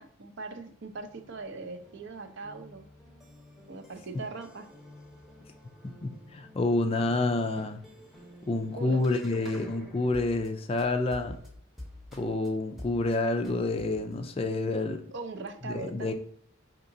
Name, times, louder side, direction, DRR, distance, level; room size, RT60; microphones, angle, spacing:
voice 1, 0.0-2.9 3.7-4.7 8.8-9.0 9.4-9.6 15.1-16.1, right 3 dB, 55° right, 7 dB, 0.5 m, -40 dB
sound 1, 0.7-10.5 10.8-12.5 12.8-13.1 13.4-14.2, left 1 dB, ahead, 0.7 m, -50 dB
voice 2, 6.0-7.8 8.5-11.4 12.1-15.0 15.7-16.1, left 2 dB, 25° left, 6 dB, 0.3 m, -28 dB
5.4 x 2.9 x 2.6 m, 0.63 s
head